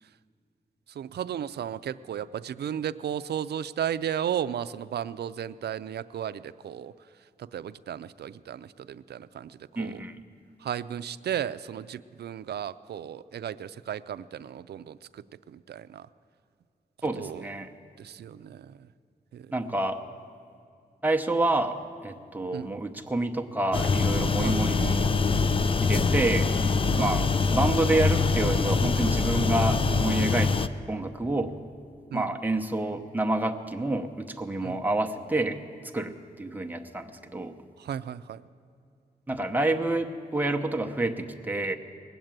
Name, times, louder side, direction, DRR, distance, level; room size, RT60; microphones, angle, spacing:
voice 1, 1.0-6.9 7.5-10.0 10.6-16.1 17.2-17.4 18.0-18.7 19.3-19.5 22.5-22.7 24.4-24.6 27.0-27.2 32.1-32.3 34.6-34.8 37.8-38.4, right 9 dB, 85° right, 13 dB, 0.4 m, -34 dB
voice 2, 9.8-10.2 17.0-17.7 19.5-20.0 21.0-25.5 25.8-26.5 26.9-30.5 30.9-31.5 32.1-35.6 35.9-37.5 39.3-41.8, right 2 dB, 10° right, 3 dB, 0.8 m, -28 dB
sound 1, 23.7-30.7, left 4 dB, 35° left, 0.4 m, -24 dB
20.0 x 7.9 x 8.9 m, 2.5 s
wide cardioid pair, 130°, 17 cm